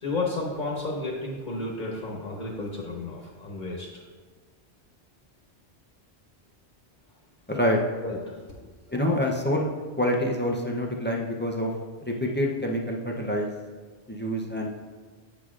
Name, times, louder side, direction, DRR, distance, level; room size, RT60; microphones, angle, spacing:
voice 1, 0.0-4.0 8.0-8.6 8.9-9.0, left 2 dB, 45° left, -3 dB, 1.1 m, -32 dB
voice 2, 7.5-7.8 8.9-9.7 10.0-11.7 12.1-13.5 14.1-14.7, left 1 dB, 15° left, -1 dB, 0.4 m, -26 dB
8.5 x 6.3 x 2.4 m, 1.4 s
omnidirectional pair, 1.1 m